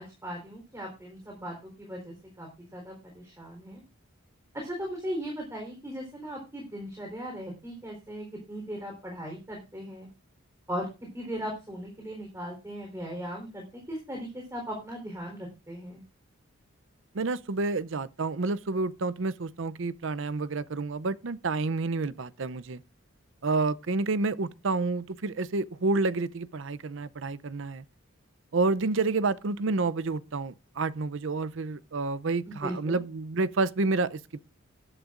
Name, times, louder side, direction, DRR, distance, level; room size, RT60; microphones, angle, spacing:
voice 1, 0.0-3.8 4.5-10.1 10.7-16.0 32.5-33.0, equal, 15° right, 3.9 m, -38 dB
voice 2, 17.1-22.8 23.4-27.8 28.5-34.4, right 3 dB, 65° right, 0.6 m, -29 dB
19.5 x 11.0 x 2.5 m
head